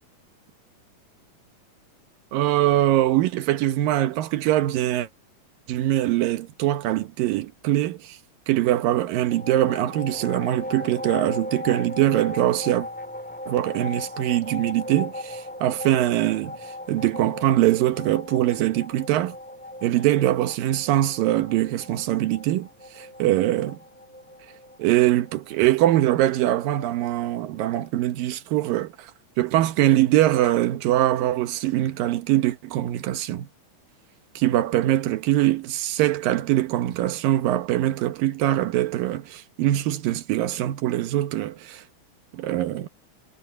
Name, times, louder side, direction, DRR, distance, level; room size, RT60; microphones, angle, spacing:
voice 1, 2.3-5.1 5.7-8.2 8.5-12.9 13.5-16.6 16.9-19.4 19.8-22.7 23.0-23.8 24.8-29.1 29.4-33.5 34.4-41.8 42.3-42.9, right 14 dB, 85° right, 2.8 m, -22 dB
sound 1, 9.3-27.9, left 1 dB, 5° left, 2.0 m, -38 dB
omnidirectional pair, 3.9 m